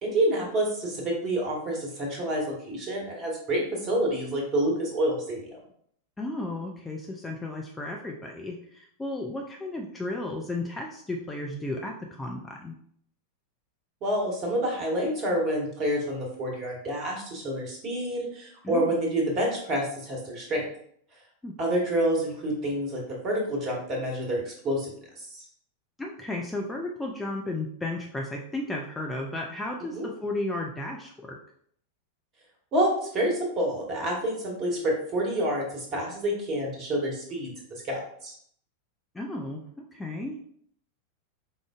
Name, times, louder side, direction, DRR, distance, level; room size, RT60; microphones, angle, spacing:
voice 1, 0.0-5.6 14.0-20.6 21.6-24.9 25.2-25.4 29.9-30.1 32.7-37.5 37.8-38.3, right 1 dB, 30° right, -1 dB, 1.4 m, -28 dB
voice 2, 6.2-12.7 18.6-18.9 21.4-21.5 26.0-31.4 39.1-39.6 39.9-40.4, left 2 dB, 10° left, 0 dB, 0.5 m, -34 dB
4.8 x 3.8 x 2.4 m, 0.64 s
figure-of-eight pair, 90°, 0 cm